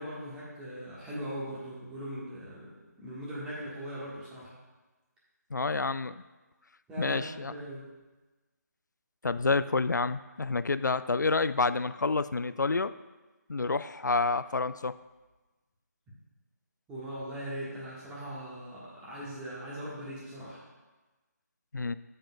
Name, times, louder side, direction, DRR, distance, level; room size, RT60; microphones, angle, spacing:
voice 1, 0.0-2.7 3.0-4.5 6.9-7.8 16.9-20.6, equal, 10° right, -8 dB, 1.5 m, -40 dB
voice 2, 5.5-6.1 7.0-7.5 9.2-12.9 13.5-15.0 21.7-21.9, left 3 dB, 80° left, 14 dB, 0.4 m, -28 dB
15.5 x 5.5 x 2.3 m, 1.2 s
figure-of-eight pair, 150°, 10 cm